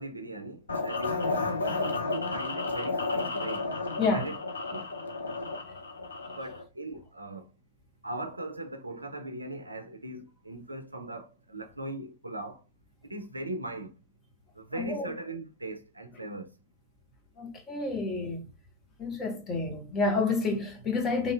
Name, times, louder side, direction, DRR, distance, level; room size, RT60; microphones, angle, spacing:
voice 1, 0.0-3.7 4.1-4.4 4.7-4.9 6.2-7.5 8.0-12.6 13.1-14.0 14.5-16.5, right 1 dB, 80° right, 0.4 m, -39 dB
sound 1, 0.7-6.6, left 3 dB, 75° left, 0.5 m, -32 dB
voice 2, 14.8-15.1 17.4-18.5 19.0-21.3, left 3 dB, 25° left, 0.9 m, -29 dB
3.0 x 2.6 x 2.3 m
figure-of-eight pair, 90°, 0 cm